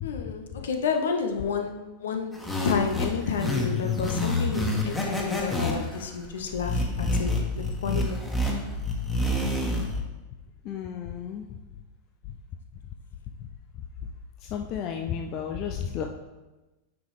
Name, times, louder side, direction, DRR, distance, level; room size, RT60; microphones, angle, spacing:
voice 1, 0.0-2.3 2.6-8.5, left 6 dB, 60° left, 4 dB, 0.9 m, -30 dB
sound 1, 2.3-10.0, left 2 dB, 5° left, 1.6 m, -28 dB
voice 2, 10.6-11.5 14.5-16.1, left 8 dB, 40° left, 3 dB, 0.5 m, -32 dB
9.1 x 5.5 x 3.3 m, 1.1 s
figure-of-eight pair, 90°, 0 cm